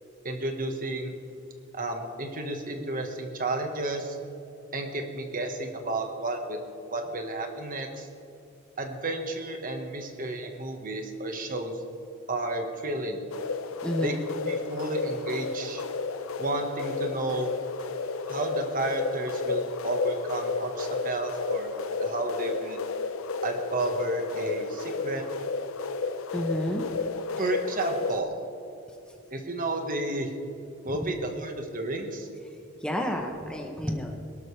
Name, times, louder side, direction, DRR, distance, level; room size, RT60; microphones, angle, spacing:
voice 1, 0.2-1.1 1.7-4.2 4.7-6.6 6.9-8.1 8.8-11.7 12.3-13.2 14.0-14.1 14.5-15.8 16.4-17.6 18.3-22.8 23.4-25.2 27.4-28.3 29.3-30.3 30.8-32.3, right 2 dB, 40° right, 4 dB, 1.5 m, -32 dB
sound 1, 13.3-28.2, left 4 dB, 75° left, 0.7 m, -32 dB
voice 2, 13.8-14.2 26.3-26.8 31.0-31.1 32.8-34.2, equal, 5° left, 2 dB, 1.0 m, -30 dB
22.0 x 12.0 x 3.4 m, 2.8 s
head